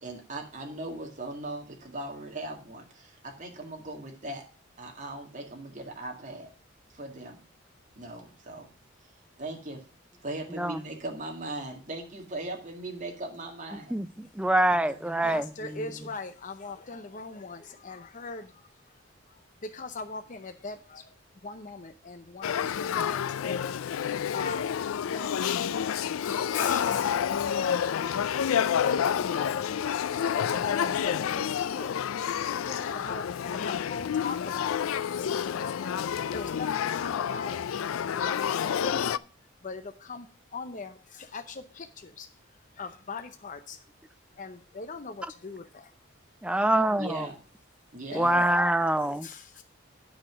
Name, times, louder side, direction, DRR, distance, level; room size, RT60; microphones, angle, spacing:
voice 1, 0.0-4.4 4.8-6.5 6.9-7.4 8.0-8.7 9.4-9.8 10.2-13.9 14.9-15.0 47.0-47.4 47.9-48.3, right 2 dB, 40° right, 2.1 m, -39 dB
voice 2, 13.9-15.8 46.4-47.3 48.1-49.3, right 1 dB, 5° right, 0.4 m, -25 dB
voice 3, 15.0-21.1 21.4-23.8 24.3-24.7 25.1-25.6 26.2-29.8 30.1-32.0 32.4-39.2 39.6-42.3 42.7-43.8 44.4-45.9 46.5-46.8 48.1-48.5 49.2-49.6, left 4 dB, 40° left, 0.6 m, -41 dB
Male speech man speaking / Child speech kid speaking / Conversation, 22.4-39.2, left 8 dB, 85° left, 0.4 m, -29 dB
9.1 x 5.9 x 6.1 m
head